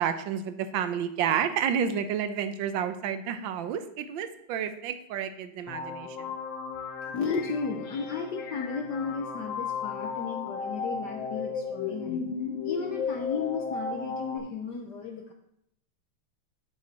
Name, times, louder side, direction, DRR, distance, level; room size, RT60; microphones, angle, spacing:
voice 1, 0.0-6.3, right 8 dB, 70° right, 10 dB, 1.3 m, -30 dB
sound 1, 5.7-14.4, left 5 dB, 80° left, 1.9 m, -35 dB
voice 2, 7.0-12.2 12.6-15.3, left 5 dB, 65° left, 4 dB, 1.2 m, -34 dB
12.0 x 5.3 x 4.1 m, 0.75 s
omnidirectional pair, 2.4 m